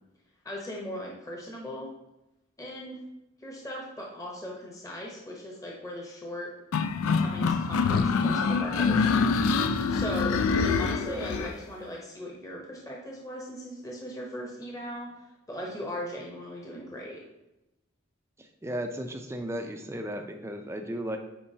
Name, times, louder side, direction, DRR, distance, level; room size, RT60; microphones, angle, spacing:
voice 1, 0.4-1.9 2.6-3.0 3.4-6.5 7.1-15.1 15.5-17.2, equal, 15° left, -2 dB, 0.8 m, -39 dB
sound 1, 6.7-11.5, left 5 dB, 80° left, 0.4 m, -25 dB
voice 2, 10.9-11.5 18.4-21.2, equal, 10° right, 5 dB, 0.4 m, -35 dB
8.6 x 4.5 x 2.8 m, 0.93 s
head